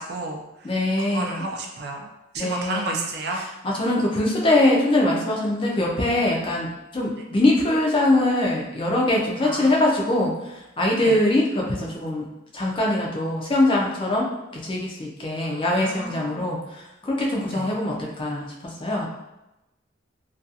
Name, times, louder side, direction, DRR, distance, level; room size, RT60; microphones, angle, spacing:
voice 1, 0.0-0.7 1.0-2.1 2.3-3.5 9.4-10.1 11.0-11.2 15.4-16.4 17.5-17.7 18.9-19.1, right 2 dB, 55° right, 1 dB, 0.4 m, -32 dB
voice 2, 0.6-1.5 2.4-3.0 3.6-12.3 12.5-18.5 18.8-19.1, left 1 dB, 25° left, -2 dB, 0.4 m, -23 dB
2.4 x 2.3 x 2.6 m, 0.94 s
head